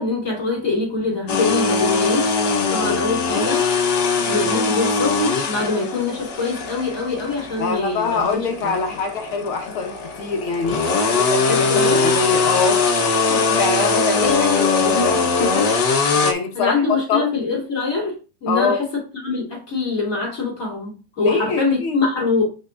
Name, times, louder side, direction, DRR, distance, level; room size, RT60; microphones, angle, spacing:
voice 1, 0.0-2.3 2.7-3.7 4.3-8.7 11.5-12.0 14.2-15.6 16.5-18.2 18.4-22.5, left 3 dB, 25° left, 2.8 m, -24 dB
sound 1, 1.3-16.3, left 4 dB, 75° left, 0.9 m, -21 dB
voice 2, 2.6-2.9 7.6-12.8 13.3-15.7 16.2-16.7 17.1-17.3 18.5-18.8 21.2-22.1, left 4 dB, 60° left, 1.6 m, -24 dB
9.2 x 5.9 x 2.5 m
omnidirectional pair, 3.4 m